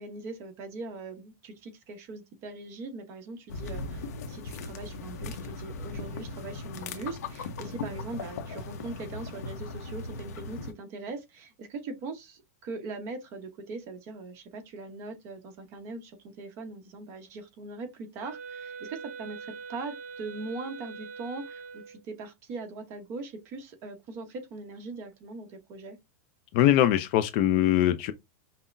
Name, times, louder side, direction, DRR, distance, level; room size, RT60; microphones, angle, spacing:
voice 1, 0.0-26.0, right 3 dB, 30° right, 1.0 m, -41 dB
sound 1, 3.5-10.7, left 3 dB, 80° left, 0.8 m, -38 dB
Wind instrument woodwind instrument, 18.2-22.0, right 5 dB, 85° right, 0.7 m, -42 dB
voice 2, 26.5-28.1, left 12 dB, 40° left, 0.4 m, -22 dB
5.6 x 2.1 x 2.6 m
supercardioid pair, 165°, 9 cm